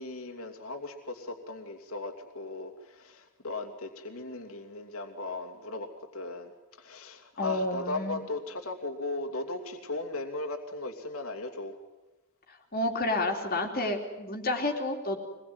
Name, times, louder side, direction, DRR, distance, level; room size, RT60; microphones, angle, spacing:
voice 1, 0.0-11.8, left 2 dB, 70° left, 3 dB, 2.9 m, -37 dB
voice 2, 7.4-8.2 12.7-15.2, left 2 dB, 40° left, 3 dB, 3.2 m, -30 dB
24.5 x 21.0 x 9.6 m, 1.1 s
head